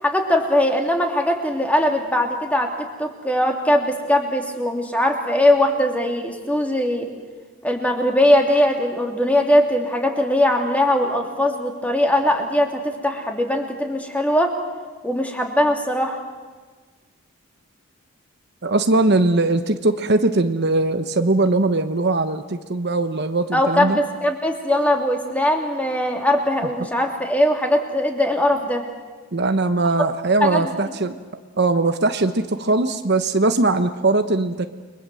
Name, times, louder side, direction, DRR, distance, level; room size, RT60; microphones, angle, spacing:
voice 1, 0.0-7.1 7.6-14.6 15.0-16.2 23.5-28.8 30.4-30.7, left 1 dB, 5° left, 3 dB, 2.9 m, -20 dB
voice 2, 18.6-24.0 29.3-31.1 31.6-34.7, right 2 dB, 50° right, 8 dB, 1.0 m, -20 dB
30.0 x 23.0 x 7.7 m, 1.4 s
head